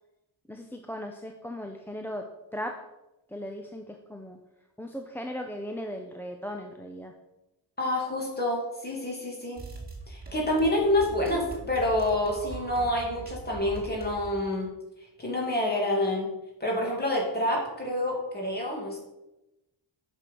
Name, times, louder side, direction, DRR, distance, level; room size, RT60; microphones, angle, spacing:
voice 1, 0.5-2.8 3.3-4.4 4.8-7.1, equal, 5° left, 4 dB, 0.5 m, -37 dB
voice 2, 7.8-9.6 10.1-14.7 15.2-16.3 16.6-19.0, left 1 dB, 20° left, -2 dB, 2.5 m, -27 dB
sound 1, 9.6-14.4, right 3 dB, 20° right, 1.7 m, -42 dB
8.7 x 6.2 x 5.4 m, 0.97 s
wide cardioid pair, 175°, 44 cm